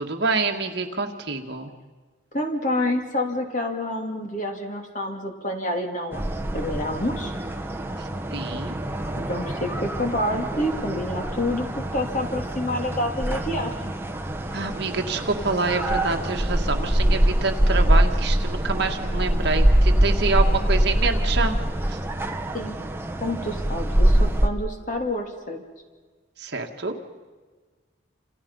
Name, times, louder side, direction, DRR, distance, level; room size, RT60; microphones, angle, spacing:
voice 1, 0.0-1.7 8.0-8.7 14.5-21.5 21.9-22.0 26.4-26.9, right 3 dB, 55° right, 4 dB, 1.9 m, -27 dB
voice 2, 2.3-6.2 6.5-7.3 9.2-13.9 22.5-22.8 23.2-25.6, left 1 dB, 40° left, 3 dB, 2.8 m, -28 dB
sound 1, 6.1-24.5, right 1 dB, 10° right, 1.1 m, -24 dB
29.0 x 28.0 x 5.6 m, 1.4 s
head